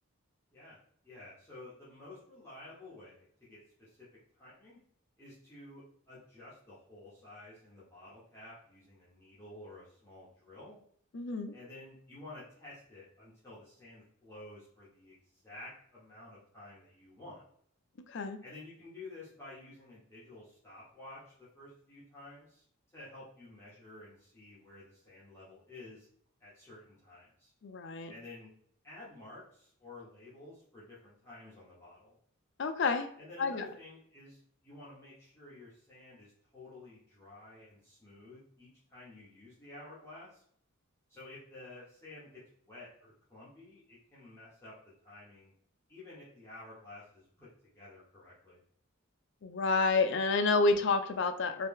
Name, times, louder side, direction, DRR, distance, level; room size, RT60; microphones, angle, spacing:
voice 1, 1.0-4.1 4.4-4.8 5.2-10.8 11.5-17.4 18.4-22.6 22.9-26.1 26.4-27.5 28.1-28.5 28.8-32.2 33.2-40.4 41.1-42.4 42.7-44.7 45.0-45.5 45.9-47.5 47.7-48.6, left 2 dB, 10° left, -10 dB, 1.1 m, -52 dB
voice 2, 11.1-11.5 18.1-18.4 27.6-28.1 32.6-33.1 33.4-33.7 49.4-51.7, left 3 dB, 55° left, 8 dB, 0.4 m, -29 dB
3.2 x 2.8 x 3.6 m, 0.63 s
head